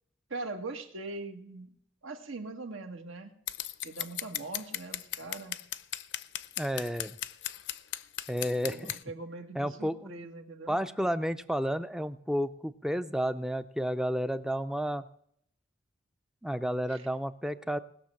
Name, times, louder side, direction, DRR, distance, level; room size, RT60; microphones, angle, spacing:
voice 1, 0.3-1.7 2.0-3.3 3.8-5.5 8.6-10.8 16.9-17.1, right 3 dB, 80° right, 5 dB, 1.7 m, -41 dB
Scissors, 3.5-9.0, left 13 dB, 60° left, 0.6 m, -36 dB
voice 2, 6.6-7.2 8.3-8.9 9.5-10.1 10.7-15.0 16.4-17.8, equal, 5° right, 12 dB, 0.4 m, -31 dB
19.5 x 6.6 x 6.4 m, 0.68 s
head